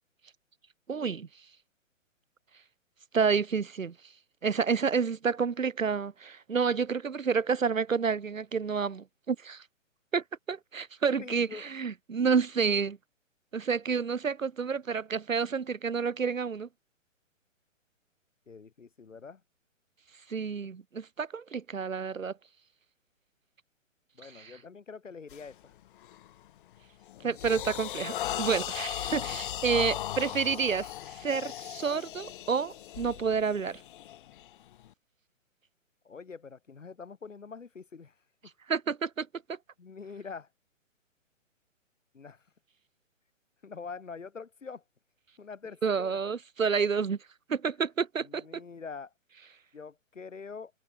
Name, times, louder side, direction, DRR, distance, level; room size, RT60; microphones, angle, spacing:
voice 1, 0.9-1.3 3.1-3.9 4.4-9.6 10.1-13.0 13.5-16.7 20.3-22.3 24.3-24.6 27.2-33.8 38.7-39.6 45.8-47.2 47.5-48.4, right 6 dB, 80° right, 1.1 m, -29 dB
voice 2, 11.2-11.7 18.5-19.4 24.1-25.7 29.0-29.4 36.0-38.1 39.8-40.5 42.1-42.4 43.6-44.8 45.4-46.2 48.2-49.1 49.7-50.7, left 5 dB, 70° left, 6.1 m, -45 dB
sound 1, 25.3-25.5 26.0-26.3 26.8-34.9, left 13 dB, 40° left, 2.6 m, -37 dB
open air
figure-of-eight pair, 130°, 39 cm